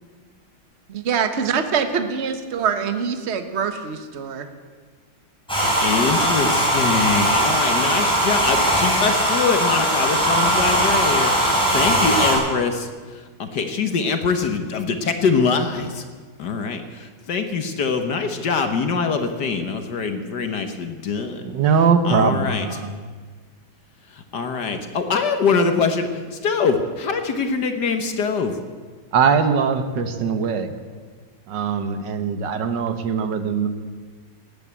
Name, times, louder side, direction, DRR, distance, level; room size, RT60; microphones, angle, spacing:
voice 1, 0.9-4.5, right 6 dB, 40° right, 8 dB, 1.1 m, -24 dB
Domestic sounds home sounds, 5.5-12.3, right 1 dB, ahead, 5.4 m, -19 dB
voice 2, 5.8-12.9 13.4-16.0 16.4-21.4 22.0-22.7 24.3-28.6, left 5 dB, 55° left, 7 dB, 1.5 m, -23 dB
voice 3, 21.4-23.0 29.1-30.7 31.5-33.7, right 6 dB, 60° right, 9 dB, 1.7 m, -21 dB
18.0 x 9.1 x 8.4 m, 1.5 s
omnidirectional pair, 2.3 m